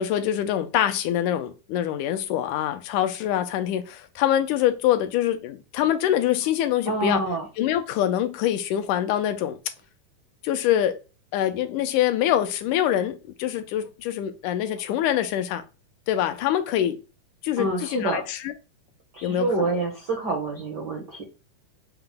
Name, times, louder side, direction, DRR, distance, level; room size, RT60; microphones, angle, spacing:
voice 1, 0.0-7.2 7.6-9.6 10.4-11.0 11.3-15.6 16.1-17.0 17.4-18.5 19.2-19.5, left 11 dB, 80° left, 2.0 m, -24 dB
voice 2, 6.9-7.5 17.6-18.2 19.1-21.3, right 3 dB, 70° right, 1.0 m, -27 dB
5.7 x 2.1 x 3.6 m
omnidirectional pair, 3.7 m